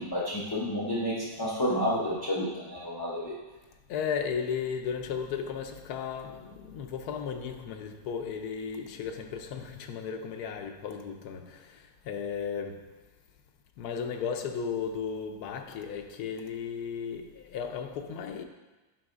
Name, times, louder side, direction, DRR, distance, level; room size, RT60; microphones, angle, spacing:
voice 1, 0.0-3.4, equal, 30° left, 0.4 m, -30 dB
voice 2, 3.9-12.9 13.8-18.4, left 6 dB, 85° left, 1.1 m, -35 dB
10.0 x 4.6 x 2.4 m
omnidirectional pair, 1.6 m